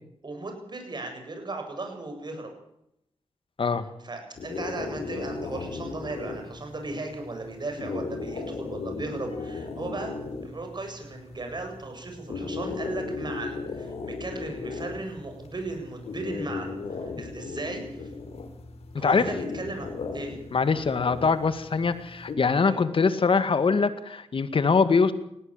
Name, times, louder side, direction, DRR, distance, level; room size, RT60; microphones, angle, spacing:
voice 1, 0.2-2.5 4.0-10.2 10.4-18.1 19.0-20.4 22.6-22.8, right 2 dB, 45° right, 4 dB, 7.9 m, -36 dB
sound 1, 4.4-22.4, left 4 dB, 80° left, 4.2 m, -37 dB
voice 2, 20.5-25.1, left 5 dB, 55° left, 11 dB, 2.0 m, -23 dB
19.5 x 17.0 x 9.1 m, 0.80 s
cardioid pair, 70°, 11 cm